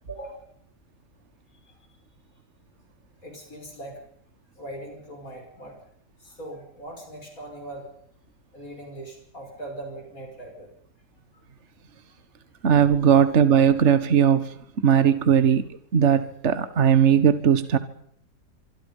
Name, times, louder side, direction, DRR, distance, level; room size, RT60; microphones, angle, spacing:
voice 1, 0.1-0.5 1.6-1.9 3.2-4.0 4.6-5.8 6.2-7.9 8.5-10.7, right 1 dB, 55° left, 2 dB, 6.3 m, -40 dB
voice 2, 12.6-14.5 14.8-15.7 15.9-17.8, right 8 dB, 45° right, 12 dB, 1.7 m, -18 dB
25.0 x 24.5 x 5.5 m, 0.67 s
omnidirectional pair, 1.8 m